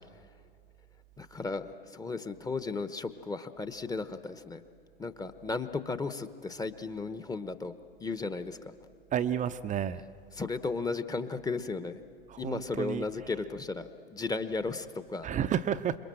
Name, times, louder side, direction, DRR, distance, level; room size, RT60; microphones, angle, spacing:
voice 1, 1.2-4.6 5.0-7.7 8.0-8.7 10.4-12.0 12.4-15.3, left 4 dB, 10° left, 11 dB, 1.0 m, -35 dB
voice 2, 9.1-10.0 12.3-13.0 15.2-16.0, right 9 dB, 25° right, 11 dB, 0.7 m, -31 dB
27.5 x 22.0 x 7.7 m, 2.2 s
hypercardioid pair, 95°, 30 cm